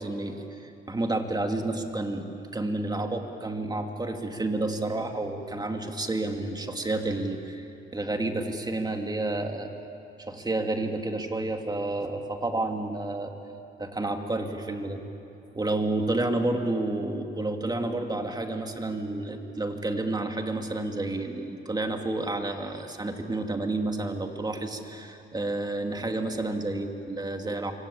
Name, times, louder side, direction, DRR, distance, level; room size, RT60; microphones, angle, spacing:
voice 1, 0.0-2.2 2.5-9.7 10.2-13.3 13.8-15.0 15.5-27.7, right 2 dB, 20° right, 4 dB, 2.7 m, -30 dB
27.5 x 24.0 x 8.7 m, 2.7 s
cardioid pair, 90°, 20 cm